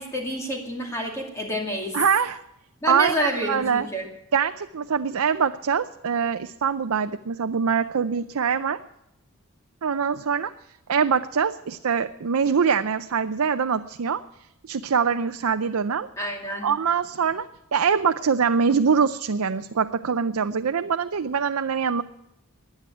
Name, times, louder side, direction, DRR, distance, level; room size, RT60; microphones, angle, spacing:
voice 1, 0.0-2.0 2.8-4.1 16.2-16.7, equal, 15° left, 0 dB, 2.4 m, -28 dB
voice 2, 1.9-2.4 2.9-3.9 4.3-8.8 9.8-10.5 10.9-14.2 14.7-16.1 16.6-17.5 17.7-22.0, right 6 dB, 75° right, 9 dB, 0.5 m, -23 dB
15.5 x 10.0 x 9.1 m, 0.84 s
head